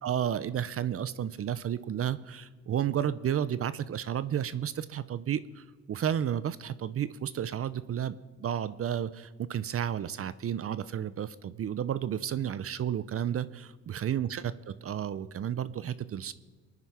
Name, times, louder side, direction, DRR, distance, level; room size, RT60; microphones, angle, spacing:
voice 1, 0.0-16.3, right 9 dB, 50° right, 16 dB, 0.7 m, -32 dB
22.0 x 9.7 x 5.7 m, 1.4 s
cardioid pair, 90°, 30 cm